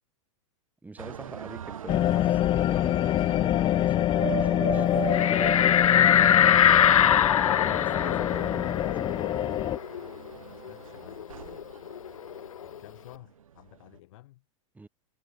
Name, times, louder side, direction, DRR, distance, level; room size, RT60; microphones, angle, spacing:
voice 1, 0.8-2.9 3.3-6.8 7.6-9.1 14.7-14.9, right 3 dB, 10° right, 4.6 m, -45 dB
sound 1, 1.0-13.2 13.6-14.0, right 8 dB, 85° right, 4.0 m, -39 dB
sound 2, 1.9-9.8, left 12 dB, 30° left, 1.4 m, -26 dB
sound 3, 5.1-10.3 10.7-10.8 11.1-12.7, left 9 dB, 90° left, 0.7 m, -23 dB
voice 2, 10.3-11.9 12.6-14.4, left 17 dB, 65° left, 7.5 m, -53 dB
hypercardioid pair, 115°, 17 cm